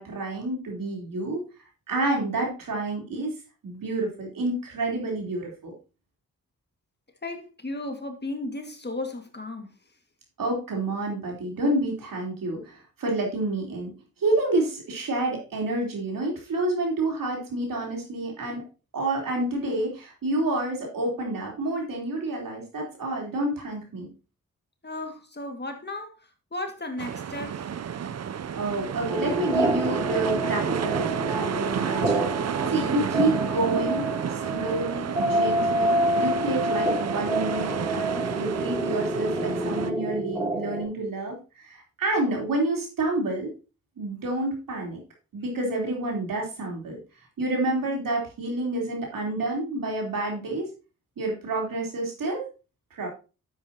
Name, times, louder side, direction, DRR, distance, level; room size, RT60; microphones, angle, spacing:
voice 1, 0.0-1.4 1.9-5.7 10.4-13.9 14.2-18.6 18.9-24.1 28.5-34.1 34.3-41.4 41.6-43.5 44.0-45.0 45.3-47.0 47.4-50.7 51.2-52.5 52.9-53.1, right 2 dB, 75° right, 3.7 m, -29 dB
voice 2, 7.2-9.7 24.8-27.7, left 2 dB, 30° left, 2.0 m, -35 dB
sound 1, 27.0-39.9, right 8 dB, 50° right, 0.6 m, -31 dB
sound 2, 29.1-40.8, right 1 dB, ahead, 5.1 m, -28 dB
9.5 x 8.4 x 2.9 m
cardioid pair, 55°, 33 cm